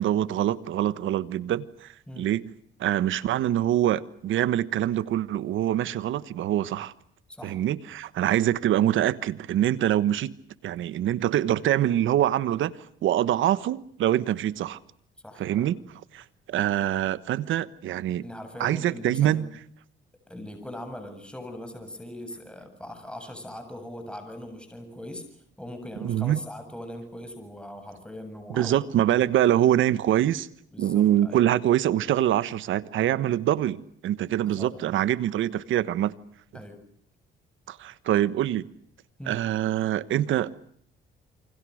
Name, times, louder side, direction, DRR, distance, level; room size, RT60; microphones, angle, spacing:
voice 1, 0.0-2.5 2.8-6.9 7.4-10.3 10.6-12.7 13.0-14.8 15.4-15.8 16.1-18.3 18.6-19.5 26.0-26.4 28.5-30.5 30.8-36.1 37.7-38.7 39.3-40.6, right 12 dB, 80° right, 1.3 m, -24 dB
voice 2, 15.2-15.7 18.2-19.5 20.3-25.2 25.6-28.8 29.1-29.2 30.7-31.4 34.4-34.8 36.5-36.8 39.2-39.4, left 1 dB, 5° left, 7.6 m, -40 dB
29.0 x 25.5 x 6.5 m
cardioid pair, 90°, 20 cm